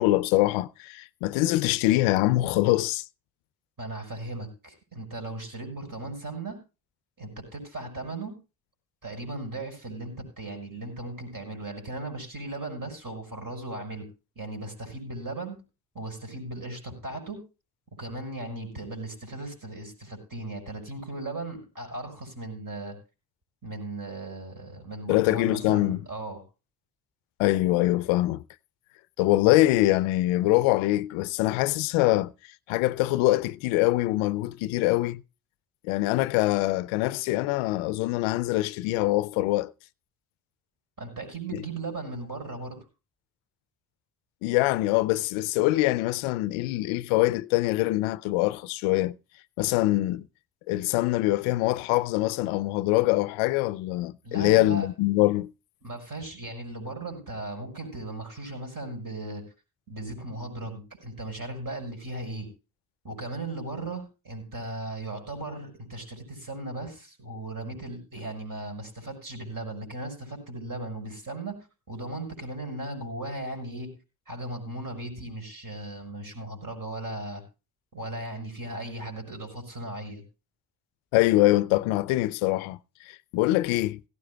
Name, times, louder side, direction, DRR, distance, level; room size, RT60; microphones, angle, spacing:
voice 1, 0.0-3.0 25.1-26.0 27.4-28.4 29.2-32.3 32.7-35.2 35.8-39.7 44.4-49.1 49.6-50.2 50.7-55.5 81.1-82.8 83.1-84.0, left 17 dB, 80° left, 0.5 m, -24 dB
voice 2, 3.8-6.6 7.2-8.4 9.0-14.1 14.4-15.6 15.9-17.4 18.0-23.0 23.6-26.4 41.0-42.8 54.2-54.9 55.8-59.4 59.9-62.5 63.0-71.6 71.9-74.0 74.3-77.4 77.9-80.2, right 2 dB, 45° right, 6.2 m, -37 dB
17.5 x 15.0 x 2.2 m
hypercardioid pair, 40°, 48 cm